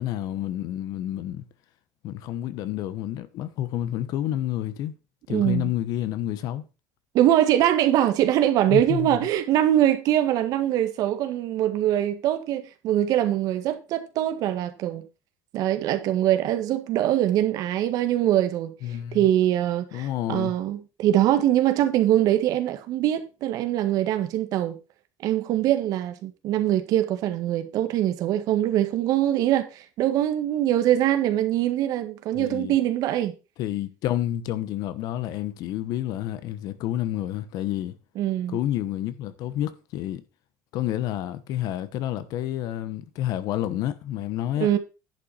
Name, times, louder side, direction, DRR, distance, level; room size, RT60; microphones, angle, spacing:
voice 1, 0.0-1.4 2.0-4.9 5.3-6.6 8.7-9.2 18.8-19.3 19.9-20.5 32.3-32.7 33.6-38.0 38.5-40.2 40.7-44.7, left 12 dB, 60° left, 1.1 m, -29 dB
voice 2, 5.3-5.7 7.1-15.0 15.5-18.7 19.1-24.8 25.2-33.3 38.1-38.6 44.6-44.8, right 12 dB, 60° right, 1.6 m, -23 dB
10.5 x 5.8 x 5.5 m
cardioid pair, 155°, 7 cm